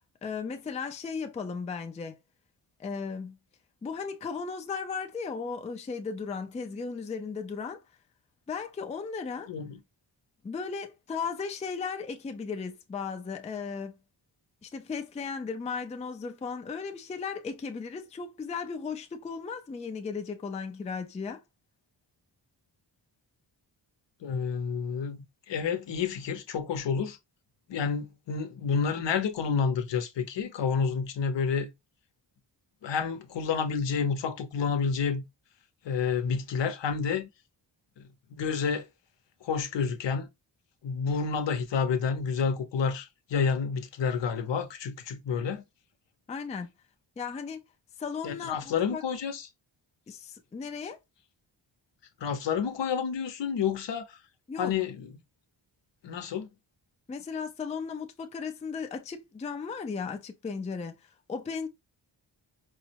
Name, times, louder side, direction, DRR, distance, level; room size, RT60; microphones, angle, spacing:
voice 1, 0.2-2.2 2.8-3.4 3.8-7.8 8.5-9.5 10.4-14.0 14.6-21.4 46.3-46.7 47.2-47.6 48.0-49.0 50.1-51.0 54.5-54.7 57.1-61.7, left 5 dB, 15° left, 0.3 m, -36 dB
voice 2, 9.5-9.8 24.2-27.2 27.7-31.7 32.8-35.2 35.9-37.3 38.3-38.8 39.4-40.3 40.8-45.6 48.2-49.4 52.2-54.1 54.6-55.1 56.0-56.5, left 6 dB, 70° left, 0.7 m, -29 dB
4.6 x 2.0 x 2.8 m
wide cardioid pair, 165°, 45 cm